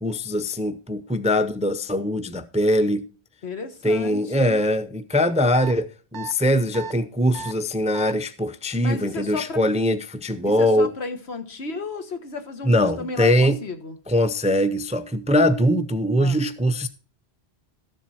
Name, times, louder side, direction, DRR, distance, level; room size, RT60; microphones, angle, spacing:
voice 1, 0.0-3.0 3.8-10.9 12.6-13.6 14.1-16.9, equal, 10° right, 0.4 m, -22 dB
voice 2, 3.4-4.6 8.8-9.6 10.6-14.0 16.2-16.4, left 3 dB, 80° left, 1.6 m, -33 dB
sound 1, 5.5-5.7 6.1-6.3 6.7-6.9 7.3-7.5 7.9-8.1, right 6 dB, 50° right, 0.6 m, -34 dB
13.0 x 7.5 x 4.2 m
omnidirectional pair, 1.1 m